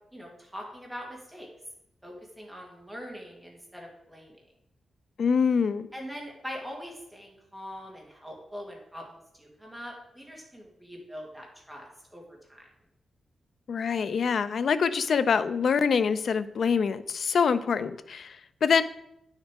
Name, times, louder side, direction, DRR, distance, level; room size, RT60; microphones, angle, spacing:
voice 1, 0.1-1.5 2.0-4.4 5.9-12.2 12.5-12.7, equal, 5° right, -1 dB, 1.8 m, -42 dB
voice 2, 5.2-5.9 13.7-18.4 18.6-18.8, left 6 dB, 55° left, 12 dB, 0.5 m, -25 dB
9.2 x 6.5 x 4.7 m, 0.80 s
wide cardioid pair, 165°, 0 cm